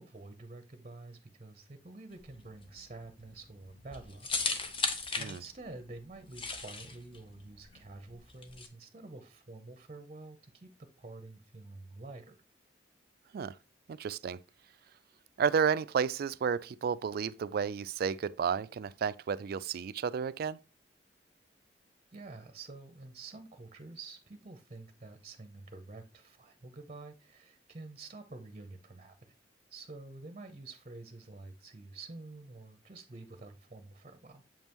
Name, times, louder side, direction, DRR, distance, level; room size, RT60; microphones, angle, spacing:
voice 1, 0.0-4.3 4.6-10.7 11.0-12.4 22.1-29.1 29.7-34.4, right 3 dB, 35° right, 0.7 m, -48 dB
sound 1, 2.1-8.7, left 4 dB, 30° left, 0.8 m, -37 dB
voice 2, 13.9-14.4 15.4-20.6, right 6 dB, 55° right, 0.3 m, -32 dB
7.3 x 5.4 x 3.0 m
head